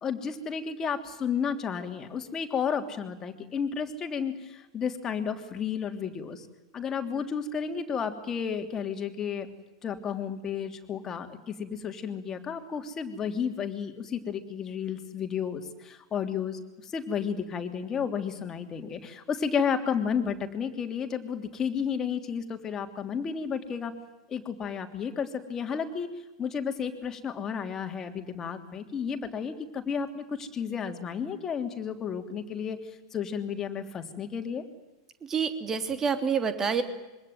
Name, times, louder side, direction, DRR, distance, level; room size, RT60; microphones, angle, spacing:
voice 1, 0.0-6.5 6.7-9.5 9.8-23.9 24.3-26.1 26.4-32.8 33.1-34.6, left 7 dB, 25° left, 6 dB, 3.2 m, -32 dB
voice 2, 35.3-36.8, right 6 dB, 20° right, 8 dB, 3.2 m, -27 dB
26.5 x 24.0 x 9.4 m, 1.0 s
figure-of-eight pair, 90°, 2 cm